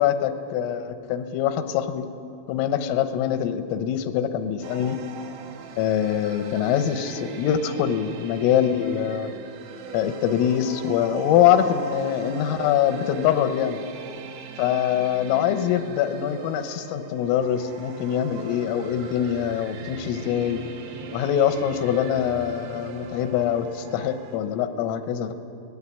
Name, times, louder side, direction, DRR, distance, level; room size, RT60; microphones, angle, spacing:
voice 1, 0.0-2.1 2.5-5.0 5.8-9.3 9.9-13.8 14.6-20.7 21.1-25.3, left 9 dB, 85° left, 10 dB, 3.8 m, -24 dB
sound 1, 4.6-24.4, right 5 dB, 60° right, 2.9 m, -40 dB
25.5 x 18.5 x 8.5 m, 2.7 s
omnidirectional pair, 5.8 m